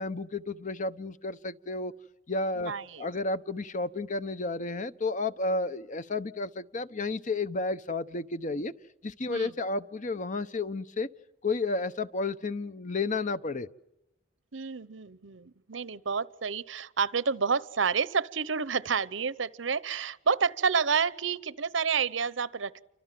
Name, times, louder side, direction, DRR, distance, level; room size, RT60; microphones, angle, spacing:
voice 1, 0.0-1.9 2.3-2.7 3.0-8.7 9.0-11.1 11.4-13.7, left 3 dB, 45° left, 13 dB, 1.0 m, -32 dB
voice 2, 2.6-3.1 9.3-9.5 14.5-22.8, right 5 dB, 85° right, 19 dB, 0.9 m, -29 dB
29.5 x 25.0 x 7.7 m, 0.89 s
head